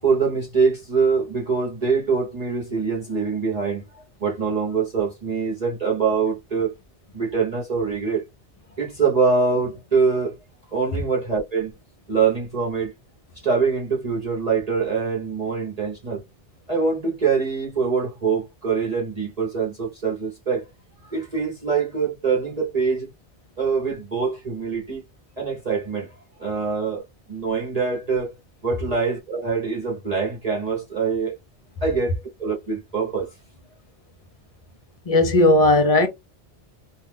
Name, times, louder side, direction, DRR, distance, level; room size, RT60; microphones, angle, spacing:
voice 1, 0.0-6.7 7.1-8.2 8.7-10.4 10.7-11.7 12.1-12.9 13.4-16.2 16.7-20.6 21.1-23.1 23.6-25.0 25.4-26.1 26.4-28.3 28.6-31.4 31.8-33.3, right 5 dB, 35° right, 1.0 m, -24 dB
voice 2, 35.1-36.1, left 1 dB, 40° left, 0.6 m, -16 dB
2.6 x 2.4 x 3.2 m
omnidirectional pair, 1.2 m